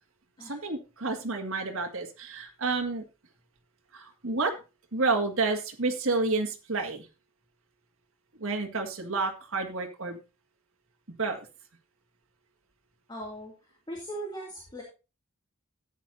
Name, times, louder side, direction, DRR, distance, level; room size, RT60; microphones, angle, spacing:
voice 1, 0.4-3.0 3.9-4.5 4.9-7.1 8.4-10.2 11.2-11.5, right 3 dB, 65° right, 1 dB, 2.0 m, -30 dB
voice 2, 13.1-13.5 13.9-14.8, right 1 dB, 20° left, -1 dB, 2.5 m, -38 dB
14.0 x 9.4 x 2.7 m, 0.30 s
head